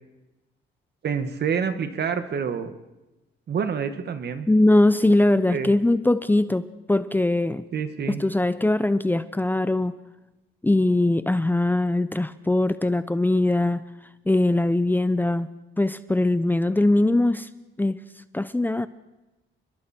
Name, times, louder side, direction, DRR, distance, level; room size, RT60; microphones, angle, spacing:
voice 1, 1.0-2.8 3.5-4.5 5.5-5.7 7.7-8.2, right 6 dB, 55° right, 9 dB, 1.9 m, -27 dB
voice 2, 4.5-7.6 8.1-10.0 10.6-13.8 14.3-15.5 15.8-17.5 17.8-18.0 18.3-18.9, left 2 dB, 10° left, 13 dB, 0.7 m, -21 dB
29.5 x 21.5 x 4.5 m, 1.0 s
cardioid pair, 90°, 20 cm